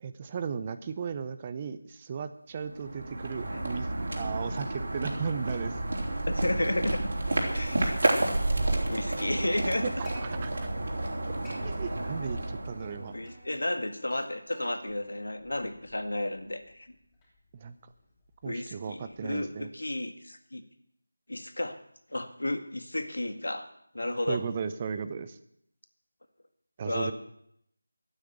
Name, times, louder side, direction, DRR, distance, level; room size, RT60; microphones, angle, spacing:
voice 1, 0.0-3.9 4.2-5.8 9.8-10.5 11.6-13.2 17.6-17.7 18.4-19.7 24.3-25.4 26.8-27.1, right 6 dB, 25° right, 11 dB, 0.7 m, -36 dB
sound 1, 2.6-13.4, right 2 dB, 60° right, 3.8 m, -31 dB
Plucked string instrument, 4.6-5.2 5.5-5.7 6.1-8.1 8.4-10.2 10.6-11.1 11.4-12.4 12.8-14.3 14.5-15.0 15.4-19.7, left 1 dB, 10° left, 4.3 m, -52 dB
voice 2, 6.3-7.1 7.5-7.9 8.9-9.8 13.1-17.0 18.4-20.6 21.3-21.8 22.1-23.7 23.9-24.4 26.8-27.1, left 1 dB, 80° left, 8 dB, 1.9 m, -32 dB
12.5 x 9.5 x 8.2 m, 0.73 s
figure-of-eight pair, 165°, 0 cm